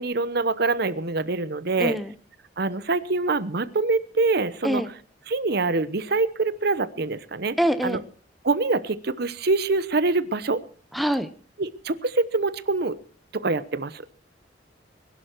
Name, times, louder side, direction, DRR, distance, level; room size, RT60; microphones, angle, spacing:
voice 1, 0.0-2.0 2.6-4.8 5.3-7.6 7.8-8.0 8.4-10.6 11.6-13.0 13.3-14.0, right 3 dB, 60° right, 15 dB, 0.9 m, -25 dB
voice 2, 1.8-2.2 4.6-4.9 7.6-8.0 10.9-11.3, equal, ahead, 11 dB, 0.8 m, -24 dB
21.0 x 11.5 x 4.6 m, 0.41 s
head